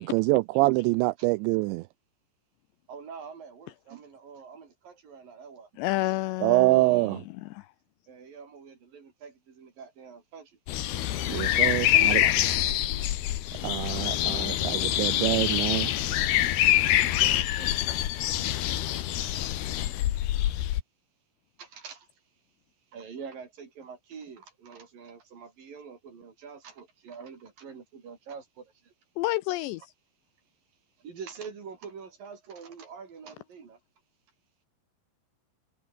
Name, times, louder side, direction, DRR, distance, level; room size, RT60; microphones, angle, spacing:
voice 1, 0.0-1.8 6.4-7.2 11.3-12.2 13.6-15.9, right 23 dB, 85° right, 2.6 m, -25 dB
voice 2, 2.9-5.7 8.1-10.5 11.1-12.5 16.9-17.7 21.6-22.1 22.9-28.7 31.0-33.8, right 6 dB, 45° right, 5.0 m, -45 dB
voice 3, 5.8-7.7 29.2-29.9, left 18 dB, 90° left, 2.5 m, -30 dB
sound 1, 10.7-20.8, left 13 dB, 65° left, 2.9 m, -25 dB
omnidirectional pair, 5.7 m